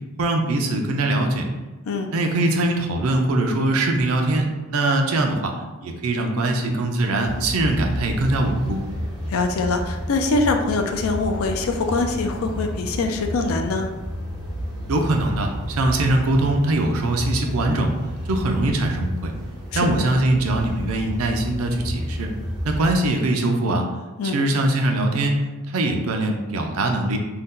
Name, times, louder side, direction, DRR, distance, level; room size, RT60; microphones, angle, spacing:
voice 1, 0.2-1.5 2.1-5.5 5.8-8.8 14.9-17.9 18.3-19.3 19.7-22.3 22.6-23.9 24.2-27.2, right 2 dB, 80° right, 3 dB, 0.5 m, -22 dB
sound 1, 7.2-23.0, equal, 5° right, 1.0 m, -31 dB
voice 2, 9.3-13.9 19.7-19.8 24.2-24.4, left 3 dB, 75° left, 4 dB, 0.4 m, -23 dB
2.7 x 2.1 x 3.6 m, 1.2 s
head